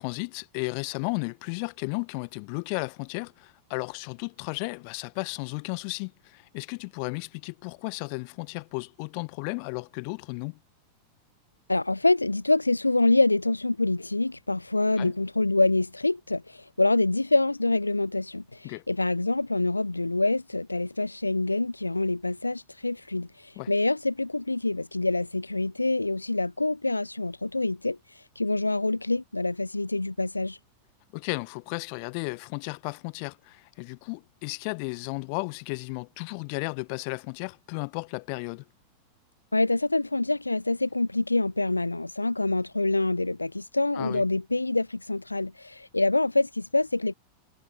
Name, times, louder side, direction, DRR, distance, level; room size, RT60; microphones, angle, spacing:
voice 1, 0.0-10.6 15.0-15.1 18.6-18.8 23.5-23.7 31.1-38.6 43.9-44.2, left 40 dB or more, 45° left, 1.3 m, -34 dB
voice 2, 11.7-30.6 39.5-47.1, left 2 dB, 85° left, 0.4 m, -26 dB
figure-of-eight pair, 90°, 0 cm